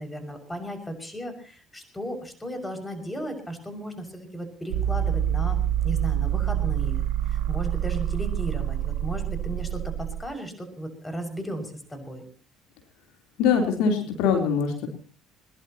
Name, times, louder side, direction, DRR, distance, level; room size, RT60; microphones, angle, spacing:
voice 1, 0.0-5.6 5.8-7.0 7.3-12.2, right 1 dB, 10° left, 7 dB, 6.2 m, -35 dB
sound 1, 4.7-10.2, right 10 dB, 70° right, 1.1 m, -26 dB
voice 2, 13.4-14.9, left 6 dB, 65° left, 3 dB, 3.7 m, -23 dB
21.5 x 21.0 x 3.0 m, 0.41 s
figure-of-eight pair, 55°, 0 cm